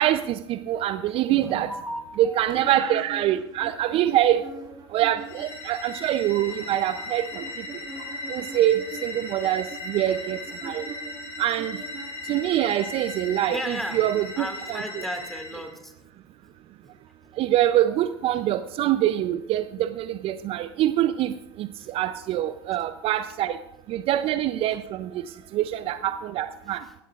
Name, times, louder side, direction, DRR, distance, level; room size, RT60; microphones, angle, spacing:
voice 1, 0.0-1.7 2.2-4.4 4.9-7.4 8.3-10.4 10.6-10.8 11.4-11.7 12.3-14.8 17.4-21.3 21.6-23.6 23.9-25.1 25.5-26.8, right 12 dB, 45° right, 12 dB, 0.5 m, -24 dB
voice 2, 1.3-2.4 6.3-6.5 13.5-14.0 14.4-15.9 16.4-16.5 16.8-17.0 17.2-17.3 21.8-22.0 24.7-24.8 26.7-26.9, equal, ahead, 5 dB, 2.1 m, -36 dB
sound 1, 2.5-5.6 5.9-12.6, right 3 dB, 30° right, 5.3 m, -43 dB
sound 2, 5.2-15.7, left 2 dB, 75° left, 5.2 m, -37 dB
17.0 x 15.0 x 2.5 m, 0.90 s
hypercardioid pair, 85°, 14 cm